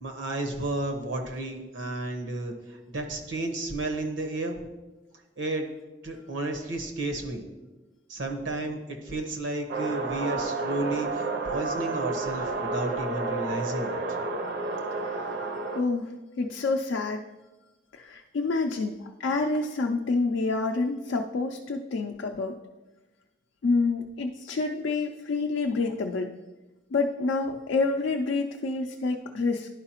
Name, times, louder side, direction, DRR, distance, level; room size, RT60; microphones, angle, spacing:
voice 1, 0.0-4.6 5.4-5.6 6.0-7.5 8.1-14.0, right 2 dB, 85° right, 3 dB, 1.0 m, -32 dB
sound 1, 9.7-15.8, right 3 dB, 55° right, 0.6 m, -31 dB
voice 2, 14.9-15.3 15.7-16.1 16.4-17.2 17.9-22.6 23.6-26.3 26.9-29.7, left 3 dB, 80° left, 3 dB, 0.4 m, -28 dB
11.0 x 4.7 x 2.9 m, 1.1 s
head